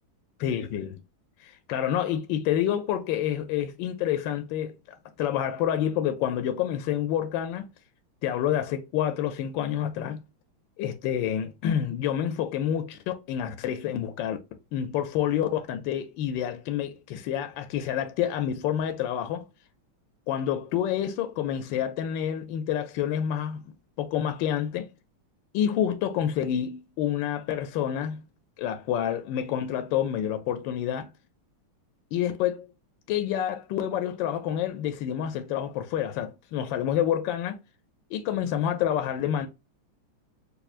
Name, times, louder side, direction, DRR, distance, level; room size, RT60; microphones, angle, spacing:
voice 1, 0.4-1.0 1.4-4.7 5.2-7.7 8.2-10.2 10.8-14.4 14.7-19.4 20.3-23.6 24.0-24.9 25.5-28.3 28.6-31.1 32.1-32.7 33.1-37.6 38.1-39.5, left 10 dB, 75° left, 1.1 m, -28 dB
5.4 x 2.3 x 2.4 m
omnidirectional pair, 2.4 m